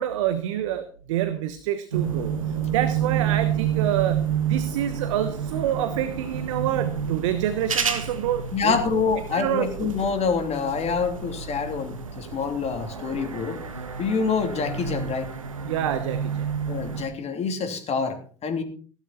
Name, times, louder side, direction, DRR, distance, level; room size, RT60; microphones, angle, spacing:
voice 1, 0.0-9.0 9.3-10.0 15.6-16.5, right 11 dB, 70° right, 12 dB, 1.2 m, -27 dB
sound 1, 1.9-17.1, right 8 dB, 85° right, 1.5 m, -29 dB
voice 2, 8.5-13.6 14.0-15.3 16.7-18.6, left 5 dB, 40° left, 6 dB, 3.3 m, -26 dB
16.0 x 12.0 x 4.3 m, 0.41 s
figure-of-eight pair, 70°, 17 cm